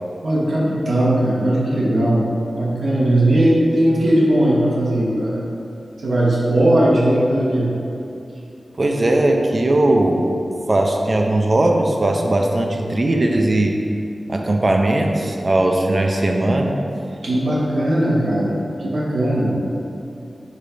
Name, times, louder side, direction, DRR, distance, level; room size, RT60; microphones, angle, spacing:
voice 1, 0.2-2.3 2.5-5.5 6.0-7.7 17.2-19.6, right 1 dB, 80° right, -5 dB, 1.2 m, -18 dB
voice 2, 8.8-10.3 10.7-13.8 14.3-16.8, right 1 dB, 45° right, 2 dB, 0.6 m, -18 dB
5.2 x 4.2 x 5.0 m, 2.6 s
wide cardioid pair, 65°, 0 cm